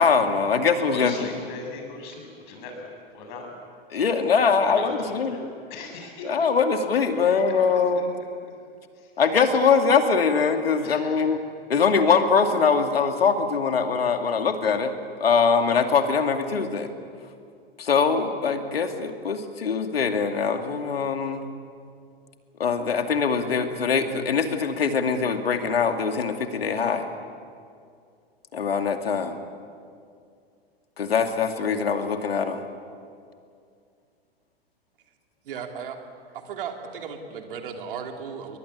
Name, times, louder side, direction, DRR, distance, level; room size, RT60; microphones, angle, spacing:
voice 1, 0.0-1.1 3.9-5.4 6.2-8.2 9.2-11.4 11.7-14.9 15.2-16.9 17.8-21.5 22.6-27.1 28.5-29.4 31.0-32.6, left 5 dB, 70° left, 6 dB, 2.5 m, -22 dB
voice 2, 0.8-2.9 3.1-3.6 4.7-5.4 5.7-6.4 7.2-7.7 7.9-8.0 8.9-9.1 10.8-11.4, left 3 dB, 50° left, 3 dB, 7.7 m, -39 dB
voice 3, 35.4-36.0 36.3-38.6, right 6 dB, 60° right, 4 dB, 3.3 m, -35 dB
29.5 x 23.5 x 8.5 m, 2.3 s
figure-of-eight pair, 95°, 31 cm